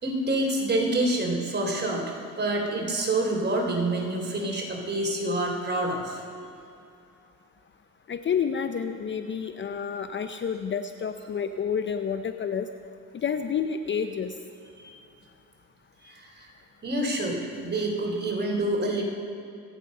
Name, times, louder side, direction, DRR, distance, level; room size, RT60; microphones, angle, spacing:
voice 1, 0.0-6.2 14.8-14.9 16.0-16.5 16.8-19.0, right 2 dB, 30° right, 0 dB, 4.0 m, -27 dB
voice 2, 8.1-12.7 13.1-14.3, left 7 dB, 30° left, 8 dB, 0.7 m, -29 dB
26.0 x 9.1 x 5.5 m, 2.6 s
supercardioid pair, 85°, 37 cm